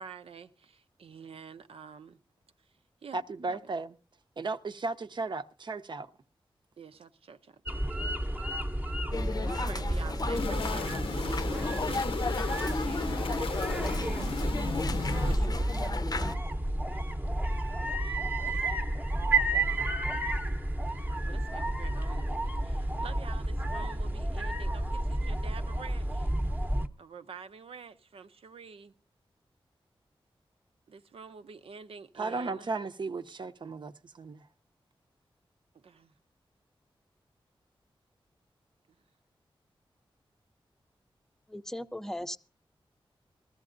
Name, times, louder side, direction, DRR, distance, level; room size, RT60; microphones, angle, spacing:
voice 1, 0.0-2.2 3.0-3.2 3.5-3.6 6.8-7.8 9.4-12.1 12.3-13.5 15.2-16.2 18.4-18.8 21.2-26.3 27.0-28.9 30.9-32.7 35.7-36.1, right 5 dB, 85° right, 0.7 m, -48 dB
voice 2, 3.1-3.9 4.4-6.1 32.2-34.4, right 3 dB, 55° right, 0.7 m, -35 dB
sound 1, 7.7-26.9, right 1 dB, 20° right, 0.9 m, -31 dB
sound 2, 9.1-16.3, left 3 dB, 45° left, 0.6 m, -35 dB
sound 3, 10.3-15.4, left 4 dB, 75° left, 0.7 m, -35 dB
voice 3, 41.5-42.4, left 1 dB, 5° left, 0.6 m, -37 dB
20.5 x 14.5 x 2.6 m
wide cardioid pair, 90°, 9 cm